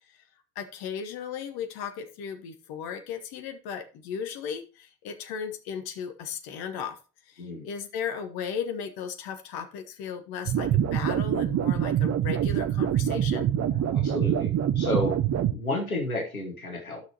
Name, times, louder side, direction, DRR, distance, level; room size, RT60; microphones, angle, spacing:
voice 1, 0.5-7.0 7.6-13.5, left 7 dB, 60° left, 7 dB, 1.3 m, -36 dB
sound 1, 10.5-15.5, right 10 dB, 40° right, 0.8 m, -25 dB
voice 2, 13.7-15.2 15.5-17.0, left 2 dB, 90° left, 2 dB, 1.1 m, -31 dB
13.0 x 6.1 x 2.9 m, 0.34 s
figure-of-eight pair, 45°, 42 cm